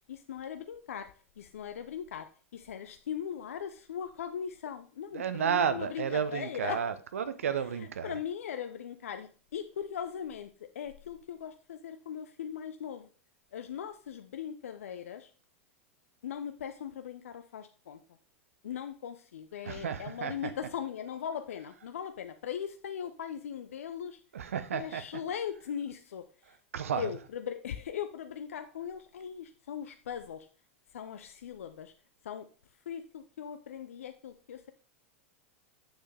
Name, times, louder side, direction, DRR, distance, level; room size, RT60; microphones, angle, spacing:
voice 1, 0.1-6.8 7.8-13.1 13.5-15.3 16.2-18.0 18.6-24.2 24.7-26.5 27.0-30.5 30.9-31.9 32.2-32.5 32.9-34.7, left 8 dB, 75° left, 0.7 m, -39 dB
voice 2, 5.1-8.1 19.6-20.5 24.3-25.0 26.7-27.1, right 7 dB, 80° right, 0.8 m, -32 dB
8.0 x 6.5 x 3.4 m
hypercardioid pair, 95°, 7 cm